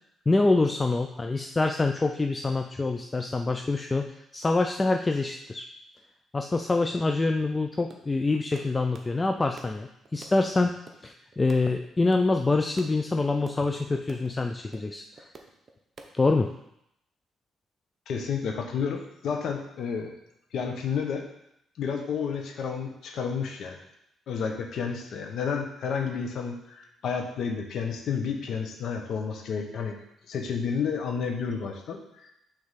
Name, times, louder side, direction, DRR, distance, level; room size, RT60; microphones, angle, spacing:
voice 1, 0.3-5.6 6.3-10.8 11.0-15.0 16.1-16.5, left 3 dB, 20° left, 5 dB, 0.4 m, -25 dB
sound 1, 7.9-13.2 13.5-13.7 13.9-15.7 16.0-16.5, right 3 dB, 40° right, 0.9 m, -48 dB
voice 2, 18.1-20.2 20.5-21.3 21.8-23.8 24.3-30.0 30.3-32.3, left 6 dB, 70° left, 3 dB, 1.0 m, -31 dB
6.3 x 3.5 x 5.7 m, 0.79 s
cardioid pair, 90°, 0 cm